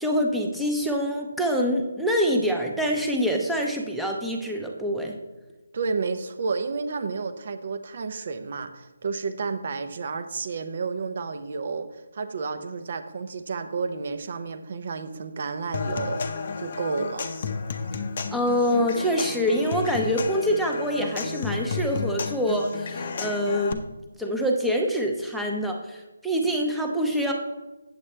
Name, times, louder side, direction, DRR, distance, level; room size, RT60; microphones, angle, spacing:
voice 1, 0.0-5.1 18.3-23.8 24.2-27.3, equal, ahead, 0 dB, 0.7 m, -25 dB
voice 2, 5.7-16.2 16.6-17.3, right 4 dB, 50° right, 10 dB, 0.7 m, -31 dB
Human voice / Acoustic guitar / Percussion, 15.7-23.7, left 5 dB, 45° left, 0.6 m, -32 dB
8.2 x 7.4 x 3.3 m, 1.1 s
figure-of-eight pair, 155°, 0 cm